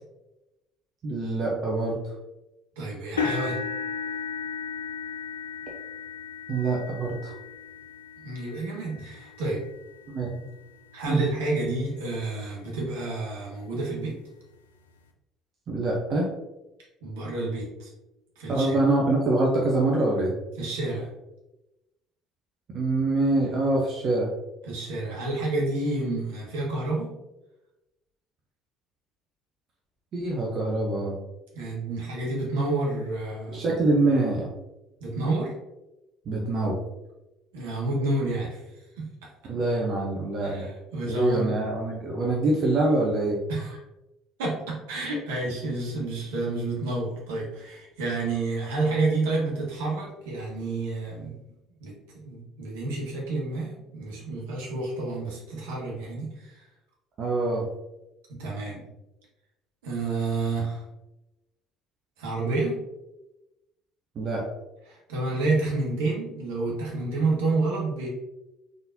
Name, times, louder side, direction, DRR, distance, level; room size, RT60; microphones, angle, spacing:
voice 1, 1.0-2.0 6.5-7.3 10.1-10.4 11.1-11.2 15.7-16.3 18.5-20.3 22.7-24.3 30.1-31.1 33.5-34.5 36.3-36.8 39.5-40.7 41.1-43.4 57.2-57.7 64.2-64.4, right 2 dB, 45° right, -2 dB, 0.8 m, -25 dB
voice 2, 2.8-3.6 8.2-9.6 10.9-14.2 17.0-17.9 18.4-18.8 20.6-21.1 24.6-27.1 31.5-33.6 35.0-35.5 37.5-38.6 39.0-39.1 40.4-41.6 43.5-43.8 44.4-51.3 51.8-56.7 58.3-58.8 59.8-60.8 62.2-62.8 64.9-68.1, right 2 dB, 75° right, -3 dB, 1.2 m, -29 dB
sound 1, 3.2-11.2 11.8-12.1 12.5-12.6 14.0-14.1, left 5 dB, 85° left, 0.4 m, -35 dB
3.8 x 3.7 x 2.6 m, 0.97 s
figure-of-eight pair, 55°, 0 cm